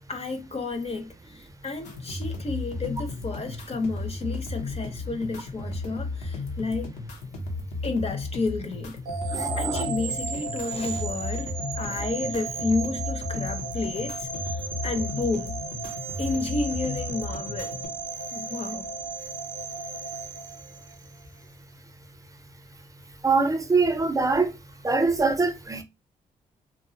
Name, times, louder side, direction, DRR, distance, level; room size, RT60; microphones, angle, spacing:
voice 1, 0.1-6.9 7.8-9.0 9.6-15.6 16.2-17.8 18.3-18.9, left 3 dB, 35° left, 0.6 m, -31 dB
sound 1, 1.8-17.9, left 3 dB, 85° left, 0.6 m, -34 dB
sound 2, 9.0-21.2, right 4 dB, 60° right, 0.4 m, -35 dB
voice 2, 9.3-9.8 23.2-24.6 24.8-25.8, right 4 dB, 20° right, 0.6 m, -23 dB
2.3 x 2.0 x 2.7 m
hypercardioid pair, 40°, 17 cm